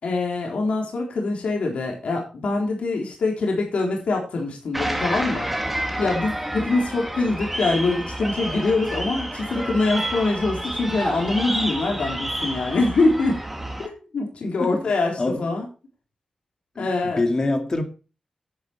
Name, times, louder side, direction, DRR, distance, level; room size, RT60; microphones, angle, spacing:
voice 1, 0.0-13.4 13.8-15.7 16.8-17.2, left 3 dB, 70° left, 3.9 m, -24 dB
sound 1, 4.7-13.9, right 1 dB, 5° right, 1.8 m, -29 dB
voice 2, 14.6-14.9 15.2-15.4 16.8-16.9 17.2-17.8, left 2 dB, 30° left, 2.0 m, -24 dB
10.5 x 10.5 x 4.4 m
wide cardioid pair, 165°, 2 cm